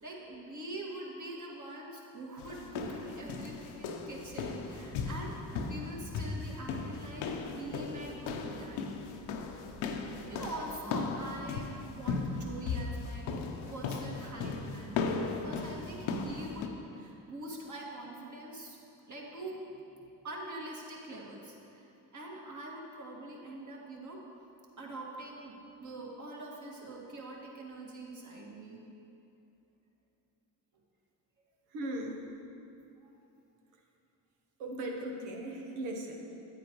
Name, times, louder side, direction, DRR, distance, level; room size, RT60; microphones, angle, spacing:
voice 1, 0.0-8.8 10.2-15.0 15.4-18.8 19.1-19.8 20.2-24.2 24.8-25.5 25.8-28.8 33.0-33.2, right 1 dB, 35° right, -3 dB, 2.1 m, -44 dB
sound 1, 2.4-16.7, left 4 dB, 75° left, 0.9 m, -37 dB
voice 2, 31.7-32.2 34.6-36.2, right 1 dB, 80° right, 1 dB, 1.2 m, -38 dB
9.0 x 8.9 x 3.1 m, 2.7 s
hypercardioid pair, 60°, 48 cm